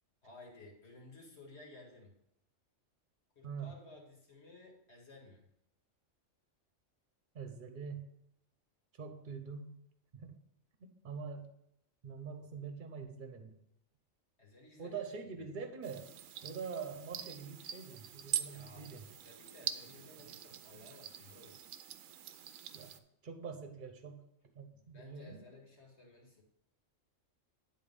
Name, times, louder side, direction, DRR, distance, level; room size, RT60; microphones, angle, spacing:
voice 1, 0.2-2.1 3.4-5.5 14.4-15.0 18.5-21.6 24.7-26.4, left 2 dB, 55° left, 0 dB, 2.1 m, -56 dB
voice 2, 7.3-8.1 8.9-9.8 10.1-10.4 11.0-11.5 12.0-13.6 14.8-16.1 16.4-19.0 22.7-24.2 24.5-25.4, right 5 dB, 45° right, 7 dB, 1.0 m, -44 dB
sound 1, 15.8-23.0, right 10 dB, 85° right, 1.0 m, -43 dB
10.0 x 4.1 x 5.4 m, 0.78 s
omnidirectional pair, 1.3 m